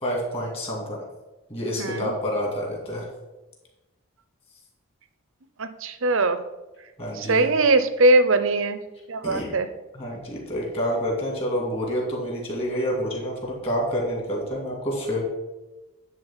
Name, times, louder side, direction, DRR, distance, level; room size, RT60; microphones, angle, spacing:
voice 1, 0.0-1.0 1.5-3.0 7.0-7.5 9.2-9.6 9.9-15.3, equal, 25° left, -2 dB, 2.5 m, -28 dB
voice 2, 1.8-2.1 5.6-6.4 7.2-8.8 9.1-9.7, right 2 dB, 60° right, 11 dB, 0.7 m, -21 dB
10.5 x 3.9 x 7.2 m, 1.1 s
head